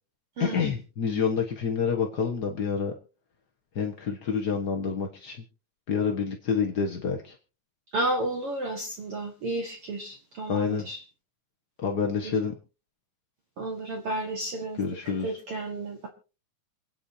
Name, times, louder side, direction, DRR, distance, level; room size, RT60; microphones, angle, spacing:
voice 1, 0.4-2.9 3.7-5.4 5.9-7.4 10.5-10.9 11.8-12.5 14.8-15.4, left 6 dB, 60° left, 2 dB, 1.0 m, -28 dB
voice 2, 7.9-11.0 12.2-12.3 13.6-14.8 15.2-16.1, right 2 dB, 50° right, 2 dB, 2.3 m, -32 dB
27.5 x 9.4 x 2.8 m, 0.34 s
omnidirectional pair, 3.9 m